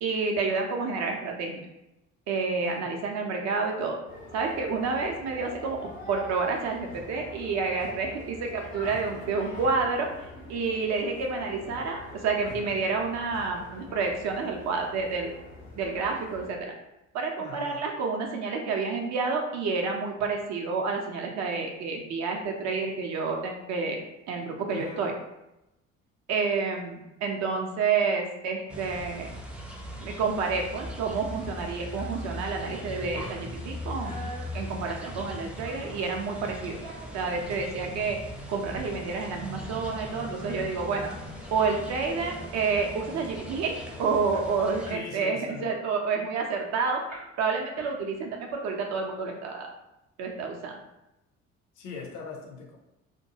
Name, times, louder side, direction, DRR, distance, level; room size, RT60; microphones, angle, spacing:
voice 1, 0.0-1.6 2.3-4.0 4.3-10.1 10.5-15.3 15.8-16.7 17.1-24.0 24.3-25.1 26.3-29.3 30.0-36.8 37.1-38.2 38.5-41.1 41.5-47.0 47.4-49.7 50.2-50.8, right 4 dB, 45° right, 2 dB, 0.6 m, -29 dB
sound 1, 4.1-16.5, left 1 dB, 90° left, 0.6 m, -45 dB
voice 2, 17.4-17.8 24.7-25.1 44.9-45.8 51.7-52.8, left 5 dB, 45° left, 0 dB, 0.5 m, -40 dB
sound 2, 28.7-44.9, left 1 dB, 5° right, 0.4 m, -39 dB
sound 3, 31.9-32.2 32.5-36.1 36.6-37.6 38.0-38.1 38.5-38.9 39.2-39.3 39.5-41.9 42.2-42.4 42.7-43.2 43.6-43.7 44.0-45.1 45.5-46.6 47.1-47.5 47.8-48.4, right 2 dB, 85° right, 0.6 m, -46 dB
2.5 x 2.2 x 2.8 m, 0.91 s
figure-of-eight pair, 50°, 39 cm